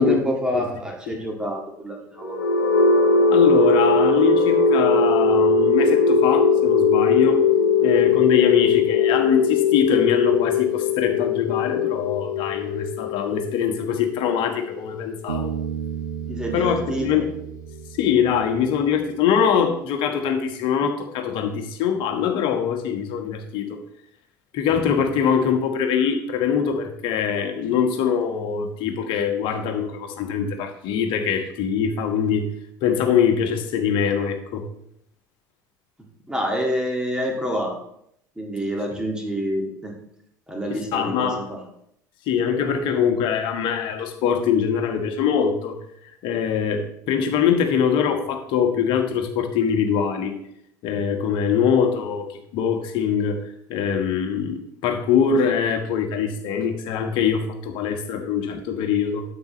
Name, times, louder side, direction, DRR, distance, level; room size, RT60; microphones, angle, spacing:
voice 1, 0.0-2.4 16.3-17.2 36.3-37.8 38.4-40.0 40.5-41.6, equal, 10° right, 0 dB, 1.9 m, -27 dB
sound 1, 2.2-16.1, left 4 dB, 75° left, 1.1 m, -20 dB
voice 2, 3.3-7.4 7.8-15.5 16.5-16.8 17.0-17.3 18.0-23.8 24.5-32.5 32.8-34.6 38.9-39.0 40.7-41.4 42.3-45.8 46.0-50.3 50.8-53.4 53.7-59.2, left 7 dB, 55° left, 5 dB, 1.3 m, -23 dB
Bass guitar, 15.3-18.8, right 9 dB, 80° right, 0.8 m, -33 dB
9.4 x 7.9 x 3.1 m, 0.74 s
figure-of-eight pair, 65°, 10 cm